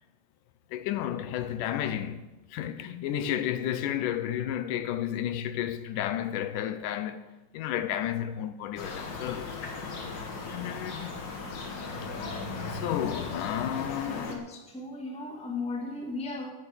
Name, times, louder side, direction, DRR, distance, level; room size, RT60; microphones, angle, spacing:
voice 1, 0.7-7.3 7.5-9.6 10.5-11.1 12.0-14.4, left 11 dB, 85° left, 2.3 m, -32 dB
sound 1, 8.8-14.4, left 4 dB, 45° left, 1.6 m, -37 dB
voice 2, 13.9-16.5, left 3 dB, 5° left, 1.0 m, -36 dB
13.5 x 8.9 x 6.5 m
omnidirectional pair, 3.6 m